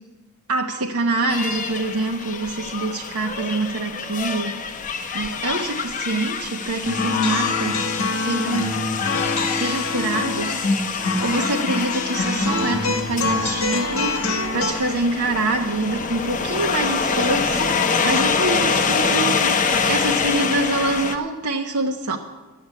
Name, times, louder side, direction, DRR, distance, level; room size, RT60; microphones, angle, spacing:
voice 1, 0.5-4.5 5.1-8.8 9.5-22.2, right 2 dB, 85° right, 1 dB, 1.0 m, -25 dB
sound 1, 1.3-21.2, left 5 dB, 35° left, 0.9 m, -25 dB
sound 2, 6.8-14.7, left 3 dB, 65° left, 1.3 m, -25 dB
12.0 x 7.9 x 8.3 m, 1.2 s
head